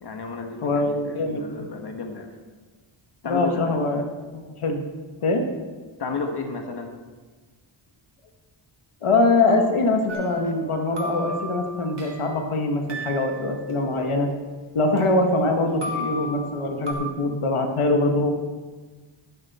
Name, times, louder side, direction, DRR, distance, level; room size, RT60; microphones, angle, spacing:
voice 1, 0.0-2.3 3.2-3.8 6.0-6.9, left 4 dB, 50° left, 4 dB, 1.4 m, -32 dB
voice 2, 0.6-1.4 3.2-4.0 4.3-4.8 5.2-5.4 9.0-14.3 14.7-18.3, left 2 dB, 80° left, 4 dB, 1.5 m, -23 dB
sound 1, 10.1-12.4 12.9-14.7 15.0-16.9, left 1 dB, 55° right, 2.4 m, -35 dB
12.0 x 11.5 x 4.2 m, 1.3 s
wide cardioid pair, 110°, 50 cm